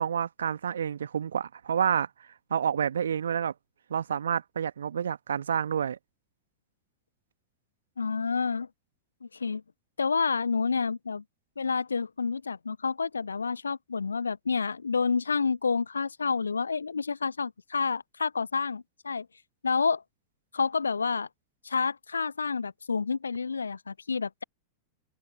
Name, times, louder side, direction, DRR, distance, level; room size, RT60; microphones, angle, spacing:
voice 1, 0.0-2.1 2.5-3.5 3.9-6.0, right 8 dB, 65° right, 1.7 m, -29 dB
voice 2, 8.0-8.7 9.2-9.6 10.0-11.2 11.6-19.3 19.6-20.0 20.5-21.3 21.6-24.4, left 5 dB, 75° left, 0.3 m, -29 dB
figure-of-eight pair, 90°, 0 cm